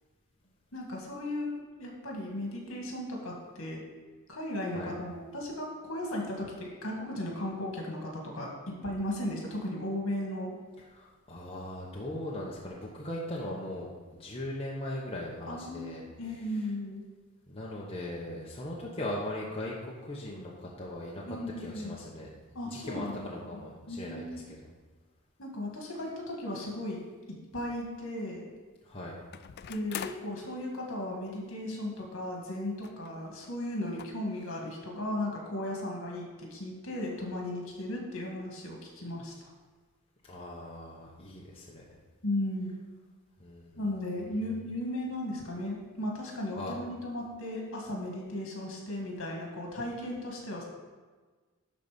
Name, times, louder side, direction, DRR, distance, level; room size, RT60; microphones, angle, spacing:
voice 1, 0.7-3.8 4.3-10.5 15.5-17.0 21.3-22.0 22.5-24.6 25.4-27.0 27.5-28.5 29.7-39.5 42.2-42.7 43.8-50.6, left 1 dB, 65° left, -1 dB, 2.2 m, -36 dB
voice 2, 10.9-16.0 17.5-22.3 22.6-24.7 28.8-29.1 40.2-41.8 43.4-44.4 46.6-46.8, left 1 dB, 25° left, -4 dB, 1.1 m, -39 dB
sound 1, 27.0-27.1 29.3-30.3 31.3-31.4 31.6-31.7 32.8-33.1 33.4-33.5 34.0-34.1, left 8 dB, 50° left, 0.3 m, -41 dB
12.0 x 4.1 x 5.2 m, 1.4 s
head